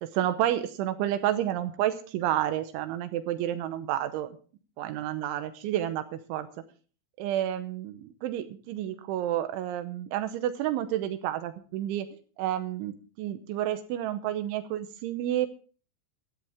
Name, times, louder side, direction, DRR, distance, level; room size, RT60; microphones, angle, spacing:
voice 1, 0.0-4.4 4.8-6.5 7.2-12.1 12.4-15.5, right 12 dB, 80° right, 10 dB, 3.0 m, -30 dB
15.5 x 13.5 x 3.5 m, 0.39 s
omnidirectional pair, 5.9 m